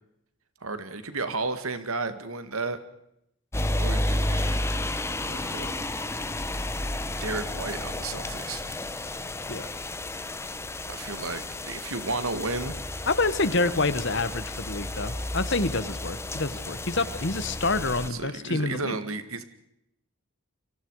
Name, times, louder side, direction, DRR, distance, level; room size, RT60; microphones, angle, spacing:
voice 1, 0.6-2.8 3.7-4.7 5.3-5.8 7.2-8.6 10.9-12.8 18.1-19.4, right 3 dB, 75° right, 11 dB, 2.1 m, -33 dB
sound 1, 3.5-18.1, left 1 dB, 10° left, 0.9 m, -32 dB
voice 2, 13.1-18.9, left 3 dB, 55° left, 13 dB, 1.5 m, -27 dB
30.0 x 24.0 x 4.9 m, 0.79 s
head